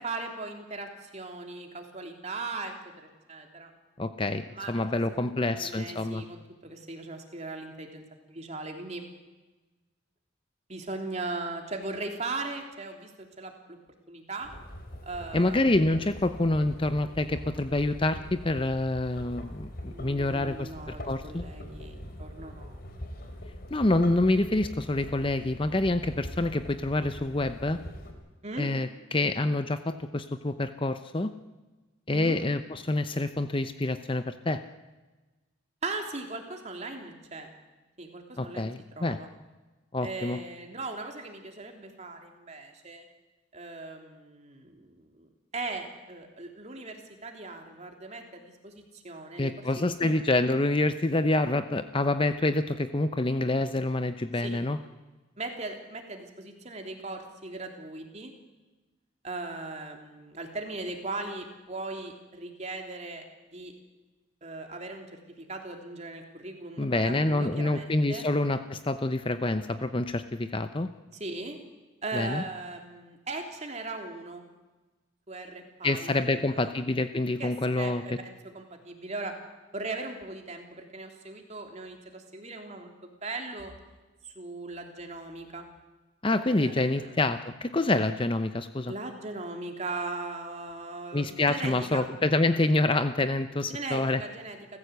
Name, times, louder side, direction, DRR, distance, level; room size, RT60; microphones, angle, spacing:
voice 1, 0.0-3.7 4.5-4.8 5.2-9.0 10.7-13.1 13.4-13.8 14.1-14.5 15.0-15.7 19.9-22.8 28.4-28.7 32.1-32.4 35.8-37.5 38.0-38.7 38.9-39.3 40.0-43.0 43.5-50.2 54.4-54.6 55.4-58.3 59.2-63.7 64.4-65.1 65.3-68.2 71.1-71.6 72.0-74.4 75.3-76.7 77.4-79.3 79.7-83.7 84.2-85.7 86.4-87.2 88.9-92.1 93.7-94.8, right 3 dB, 35° right, 3 dB, 3.1 m, -39 dB
voice 2, 4.0-6.2 15.3-21.4 23.7-27.8 28.6-31.3 32.1-34.6 38.4-39.2 39.9-40.4 49.4-54.8 66.8-70.9 72.1-72.4 75.8-78.0 86.2-88.9 91.1-94.2, left 2 dB, 25° left, 10 dB, 0.7 m, -27 dB
sound 1, 14.4-28.1, equal, 50° left, 3.6 m, -43 dB
29.5 x 15.0 x 8.2 m, 1.2 s
head